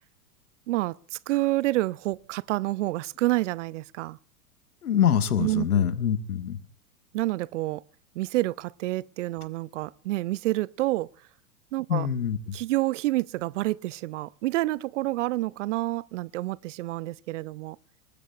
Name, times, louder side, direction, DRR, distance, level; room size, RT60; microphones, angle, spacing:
voice 1, 0.7-4.2 5.4-5.9 7.1-7.8 8.1-11.1 11.7-12.1 12.5-17.8, right 18 dB, 55° right, 0.6 m, -28 dB
voice 2, 4.8-6.6 11.9-12.6, left 9 dB, 75° left, 1.8 m, -24 dB
27.5 x 19.5 x 2.4 m
figure-of-eight pair, 95°, 44 cm